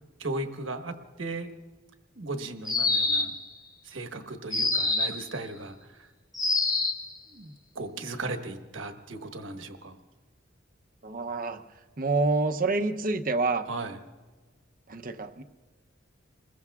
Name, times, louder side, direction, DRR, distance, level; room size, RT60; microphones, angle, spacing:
voice 1, 0.2-1.5 2.1-3.4 3.8-6.1 7.3-10.0 13.7-14.0, right 2 dB, 70° right, 5 dB, 1.3 m, -37 dB
sound 1, 2.6-3.5 4.5-5.3 6.3-7.1, left 3 dB, 20° left, 1.6 m, -26 dB
voice 2, 11.0-11.6 12.0-13.7 14.9-15.4, right 3 dB, 45° right, 7 dB, 0.7 m, -27 dB
28.0 x 21.0 x 2.4 m, 1.3 s
head